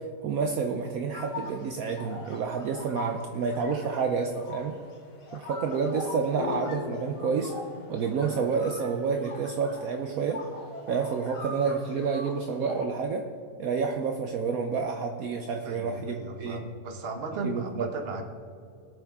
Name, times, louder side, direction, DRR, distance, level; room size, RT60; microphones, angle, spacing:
voice 1, 0.0-4.7 5.3-7.5 7.9-10.4 10.9-13.3 13.6-16.6 17.4-17.9, right 5 dB, 65° right, 4 dB, 1.1 m, -29 dB
sound 1, 1.1-12.8, left 1 dB, 75° left, 3.4 m, -43 dB
sound 2, 5.6-10.1, left 6 dB, 60° left, 1.1 m, -41 dB
voice 2, 15.6-18.2, right 3 dB, 40° right, 5 dB, 1.2 m, -36 dB
20.5 x 6.9 x 3.6 m, 2.5 s
omnidirectional pair, 1.7 m